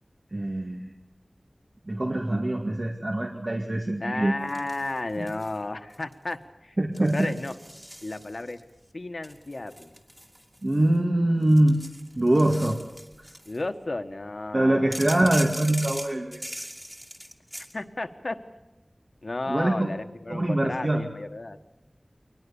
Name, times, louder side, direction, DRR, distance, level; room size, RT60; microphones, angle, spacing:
voice 1, 0.3-0.8 1.9-4.4 5.2-5.3 6.8-7.3 10.6-11.8 12.2-12.8 14.5-16.4 19.5-19.9 20.3-21.0, right 1 dB, 50° right, 2 dB, 2.1 m, -23 dB
voice 2, 4.0-7.5 8.0-8.6 8.9-9.9 13.4-15.0 17.7-18.4 19.2-21.6, left 2 dB, 70° left, 8 dB, 1.4 m, -33 dB
sound 1, 4.5-5.6 5.9-6.3 6.9-8.6 9.2-11.0 11.4-13.6 14.9-17.7, equal, 10° right, 2.4 m, -40 dB
22.5 x 19.5 x 7.1 m, 1.0 s
wide cardioid pair, 55°, 0 cm